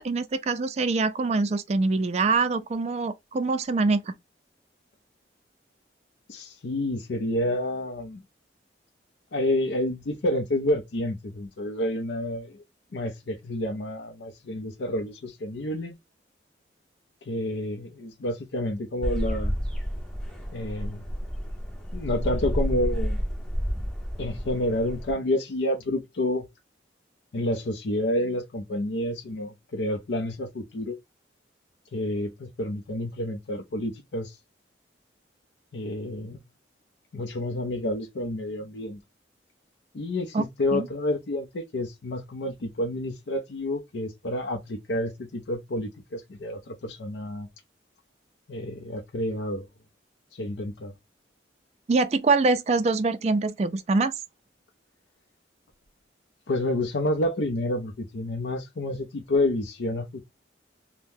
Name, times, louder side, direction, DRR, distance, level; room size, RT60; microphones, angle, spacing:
voice 1, 0.0-4.1 40.3-40.5 40.7-40.9 51.9-54.1, right 3 dB, 35° right, 0.3 m, -24 dB
voice 2, 6.3-8.2 9.3-12.6 12.9-15.9 17.3-19.5 20.5-21.0 21.9-23.2 24.2-26.5 27.3-31.0 31.9-34.4 35.7-36.4 37.1-39.0 39.9-47.5 48.5-49.7 50.3-50.9 56.5-60.2, left 1 dB, 70° left, 0.5 m, -29 dB
sound 1, 19.0-25.1, equal, 5° left, 0.6 m, -30 dB
2.7 x 2.1 x 3.4 m
head